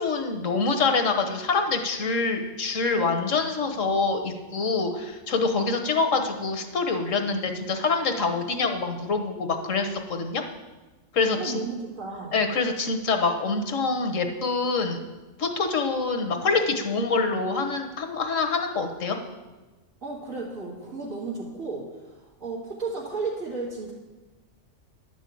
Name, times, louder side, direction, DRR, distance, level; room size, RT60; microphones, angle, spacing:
voice 1, 0.0-10.4 11.1-11.6 12.3-15.0 15.4-19.2, left 4 dB, 70° left, 5 dB, 1.5 m, -25 dB
voice 2, 11.3-12.4 20.0-23.9, right 4 dB, 75° right, -6 dB, 2.7 m, -34 dB
11.0 x 6.2 x 8.4 m, 1.2 s
omnidirectional pair, 1.4 m